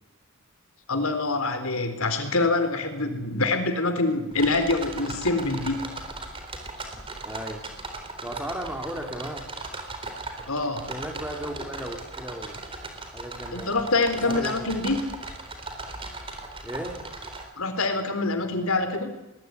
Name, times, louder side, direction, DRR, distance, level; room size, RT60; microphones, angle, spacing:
voice 1, 0.9-5.8 10.5-10.9 13.5-15.0 17.6-19.1, left 3 dB, 75° left, 8 dB, 3.9 m, -25 dB
sound 1, 4.3-17.4, right 3 dB, 25° right, 4.0 m, -38 dB
voice 2, 7.2-7.6 8.2-9.5 10.9-12.6 13.1-13.8 14.2-15.0 16.6-17.0, right 1 dB, 10° right, 3 dB, 3.5 m, -35 dB
22.5 x 21.0 x 9.7 m, 0.99 s
head